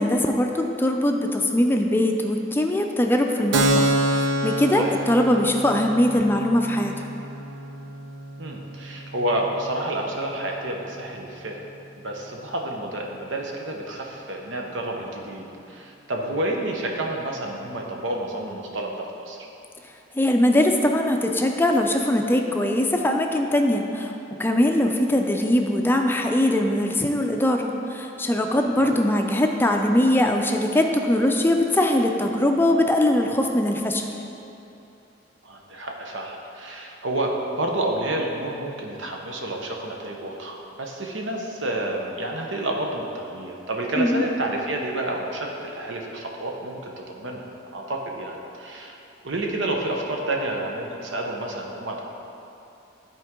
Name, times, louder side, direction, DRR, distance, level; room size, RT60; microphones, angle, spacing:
voice 1, 0.0-6.9 20.1-24.1 24.4-34.1 44.0-44.2, left 1 dB, 10° left, 3 dB, 0.4 m, -21 dB
Keyboard (musical), 3.5-10.8, right 1 dB, 70° right, 0.6 m, -28 dB
voice 2, 8.4-11.6 12.0-19.4 28.6-28.9 35.4-46.8 47.1-49.0 49.2-52.0, right 1 dB, 85° right, 1 dB, 1.0 m, -29 dB
12.5 x 4.5 x 3.7 m, 2.8 s
head